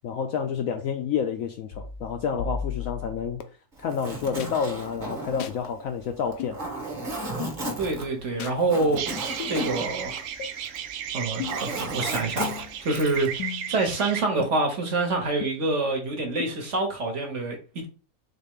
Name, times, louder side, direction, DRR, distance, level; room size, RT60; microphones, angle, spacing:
voice 1, 0.0-3.4 3.8-6.6, left 7 dB, 70° left, 0.8 m, -29 dB
sound 1, 1.7-3.4 4.4-4.5 5.4-5.6 6.4-6.6 7.4-7.6 8.4-8.6 9.4-9.6 10.4-10.5 11.4-11.7 12.4-12.8 13.4-13.8 14.4-14.5 15.4-15.5 16.4-16.5, left 8 dB, 85° left, 1.2 m, -35 dB
Zipper (clothing), 3.8-10.9 11.2-13.3, right 2 dB, 35° right, 1.2 m, -34 dB
voice 2, 7.8-9.0 9.5-10.2 11.1-17.9, right 2 dB, 50° right, 1.2 m, -27 dB
sound 2, 9.0-14.2, right 9 dB, 75° right, 1.1 m, -34 dB
4.0 x 3.7 x 3.6 m
omnidirectional pair, 1.8 m